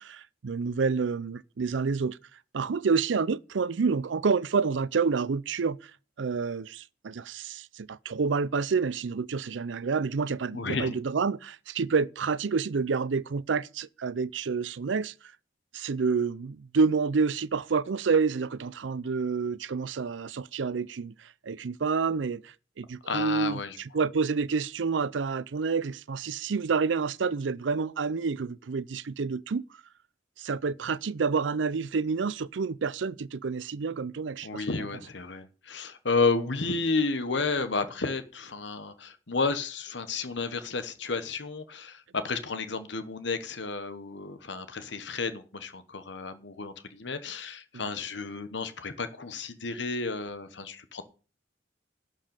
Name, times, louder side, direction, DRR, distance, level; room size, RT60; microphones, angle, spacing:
voice 1, 0.0-2.2 2.5-5.9 6.2-15.1 15.7-29.6 30.4-34.6, right 5 dB, 80° right, 0.5 m, -28 dB
voice 2, 10.5-10.9 23.1-23.8 34.4-51.0, left 4 dB, 70° left, 1.2 m, -31 dB
12.0 x 5.4 x 8.9 m
head